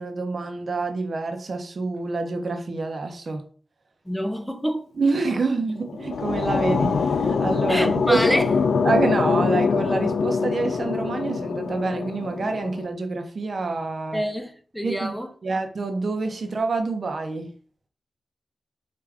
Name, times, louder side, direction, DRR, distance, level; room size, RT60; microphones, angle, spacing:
voice 1, 0.0-3.4 5.0-8.2 8.8-14.2 14.8-15.2 15.4-17.5, right 3 dB, 60° right, 0.7 m, -27 dB
voice 2, 4.1-4.8 7.7-8.5 14.1-15.3, equal, 5° left, 0.5 m, -26 dB
sound 1, 5.7-12.9, left 5 dB, 85° left, 0.3 m, -24 dB
4.7 x 2.5 x 3.4 m
cardioid pair, 60°, 0 cm